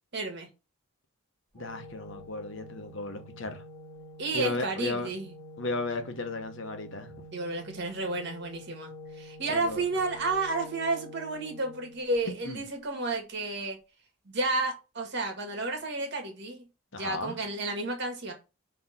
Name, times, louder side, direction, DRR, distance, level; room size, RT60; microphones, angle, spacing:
voice 1, 0.1-0.5 4.2-5.3 7.3-8.9 9.2-13.8 14.2-16.6 16.9-18.3, right 2 dB, 50° right, 1.7 m, -31 dB
voice 2, 1.5-3.6 4.3-5.1 5.6-7.1 9.5-9.8 12.3-12.6 16.9-17.4, left 2 dB, 60° left, 1.0 m, -35 dB
Organ, 1.6-12.5, equal, 5° left, 1.7 m, -48 dB
5.9 x 3.1 x 5.7 m
head